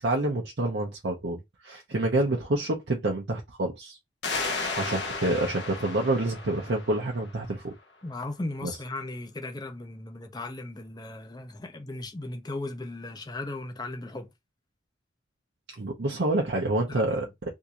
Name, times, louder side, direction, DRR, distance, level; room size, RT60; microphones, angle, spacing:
voice 1, 0.0-4.0 4.7-7.7 8.6-8.7 15.8-17.3, right 2 dB, 60° right, 0.7 m, -28 dB
sound 1, 4.2-7.6, left 3 dB, 70° left, 1.0 m, -34 dB
voice 2, 8.0-14.3 16.9-17.2, left 2 dB, 20° left, 0.6 m, -37 dB
3.6 x 2.6 x 2.8 m
head